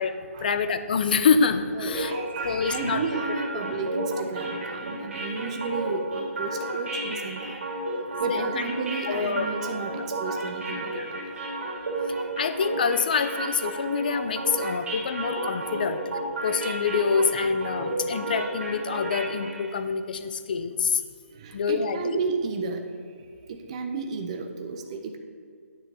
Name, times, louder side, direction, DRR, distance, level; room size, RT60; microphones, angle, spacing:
voice 1, 0.4-2.1 2.4-3.0 3.8-3.9 8.3-8.4 9.1-9.5 11.0-11.1 12.4-16.0 16.4-21.0 21.5-22.2, left 5 dB, 40° left, 11 dB, 0.5 m, -26 dB
voice 2, 1.7-7.6 8.2-11.3 21.3-25.2, right 4 dB, 25° right, 5 dB, 0.5 m, -33 dB
sound 1, 1.9-19.7, right 2 dB, 60° right, 2.3 m, -32 dB
9.6 x 3.7 x 6.7 m, 2.2 s
hypercardioid pair, 170°, 8 cm